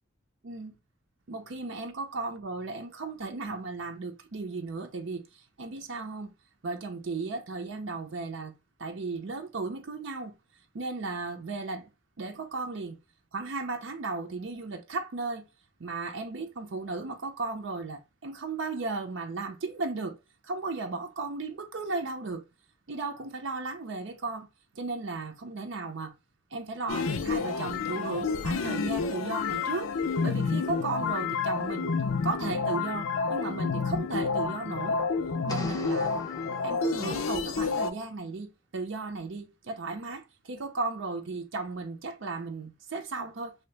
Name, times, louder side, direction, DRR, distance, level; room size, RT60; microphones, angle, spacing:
voice 1, 0.4-0.8 1.3-6.3 6.6-8.5 8.8-10.3 10.7-11.9 12.2-13.0 13.3-15.4 15.8-20.2 20.4-22.4 22.9-24.5 24.7-26.1 26.5-29.9 30.2-32.0 32.2-35.0 35.4-36.1 36.6-43.6, right 3 dB, 65° right, 0.6 m, -35 dB
sound 1, 26.9-37.9, left 5 dB, 85° left, 0.5 m, -29 dB
sound 2, 35.5-37.4, left 2 dB, 20° left, 0.5 m, -42 dB
3.1 x 2.8 x 3.3 m
head